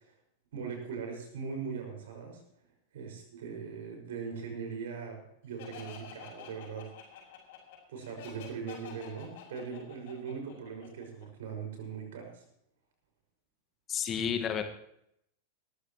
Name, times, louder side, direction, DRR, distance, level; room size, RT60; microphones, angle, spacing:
voice 1, 0.5-2.4 2.9-6.9 7.9-12.4, right 6 dB, 60° right, 2 dB, 5.8 m, -40 dB
Laughter, 5.6-11.2, left 8 dB, 55° left, 5.9 m, -49 dB
voice 2, 13.9-14.6, left 8 dB, 25° left, 7 dB, 1.7 m, -31 dB
21.5 x 14.5 x 3.1 m, 0.74 s
figure-of-eight pair, 90°, 0 cm